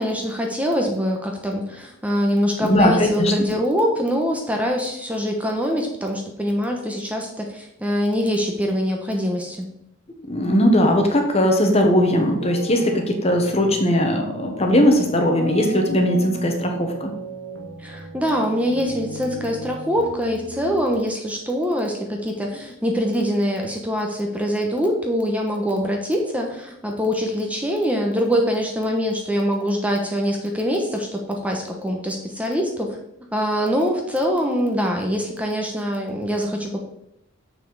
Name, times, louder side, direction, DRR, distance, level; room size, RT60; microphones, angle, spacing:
voice 1, 0.0-9.7 17.8-33.0 33.3-36.8, equal, 5° right, 1 dB, 1.0 m, -24 dB
voice 2, 2.6-3.3 10.3-17.1, equal, 30° left, 3 dB, 1.1 m, -19 dB
sound 1, 11.9-20.9, right 2 dB, 75° right, 1.5 m, -35 dB
7.0 x 5.9 x 4.7 m, 0.79 s
head